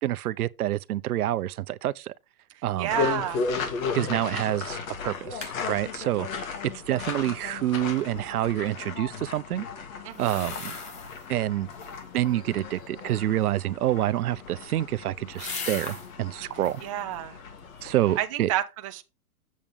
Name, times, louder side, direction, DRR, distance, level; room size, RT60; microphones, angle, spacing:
voice 1, 0.0-2.1 2.6-2.9 3.9-6.5 6.9-9.6 10.2-10.8 11.3-11.7 12.1-16.8 17.8-18.5, right 13 dB, 75° right, 0.7 m, -27 dB
voice 2, 2.5-3.4 10.0-10.3 16.8-17.4 18.2-19.0, right 12 dB, 25° right, 0.4 m, -30 dB
sound 1, 2.9-18.2, left 5 dB, 60° left, 2.5 m, -35 dB
sound 2, 4.0-4.3 4.6-4.7 5.1-5.6 10.1-11.3 11.7-12.2 14.2-16.1 16.5-16.9 17.4-18.1 18.4-18.5, left 4 dB, 15° left, 0.7 m, -40 dB
7.5 x 7.1 x 3.5 m
hypercardioid pair, 145°, 46 cm